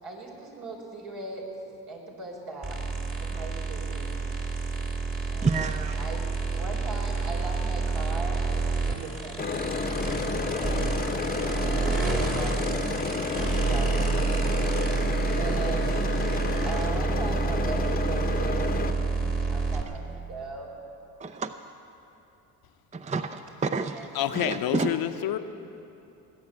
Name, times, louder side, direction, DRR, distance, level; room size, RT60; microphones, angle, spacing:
voice 1, 0.0-1.5 1.9-2.8 3.2-4.1 5.3-10.0 10.4-10.8 11.6-13.2 13.6-14.3 15.3-20.8 23.8-24.1 24.4-24.5, right 3 dB, 65° right, -1 dB, 4.2 m, -39 dB
sound 1, 2.6-19.8, right 4 dB, 35° right, 2.1 m, -28 dB
voice 2, 5.4-6.0 13.6-13.7 16.5-16.6 21.2-21.5 22.9-24.9, right 4 dB, 15° right, 9 dB, 0.5 m, -30 dB
sound 2, 9.4-18.9, left 4 dB, 20° left, 0.9 m, -31 dB
voice 3, 24.1-25.4, left 11 dB, 60° left, 9 dB, 0.8 m, -27 dB
20.0 x 8.7 x 7.5 m, 2.9 s
supercardioid pair, 70°, 41 cm